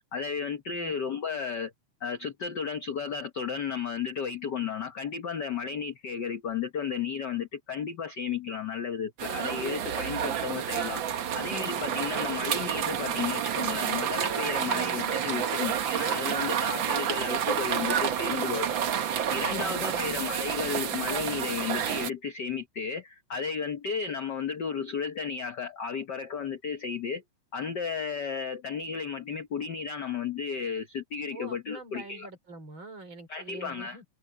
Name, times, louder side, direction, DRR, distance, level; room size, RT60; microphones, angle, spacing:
voice 1, 0.1-1.7 2.0-18.7 19.3-27.2 27.5-32.3 33.3-34.0, left 6 dB, 60° left, 1.1 m, -33 dB
sound 1, 9.2-22.1, right 8 dB, 60° right, 1.3 m, -29 dB
voice 2, 14.6-14.9 19.5-20.2 31.3-34.0, right 2 dB, 40° right, 4.3 m, -45 dB
omnidirectional pair, 3.6 m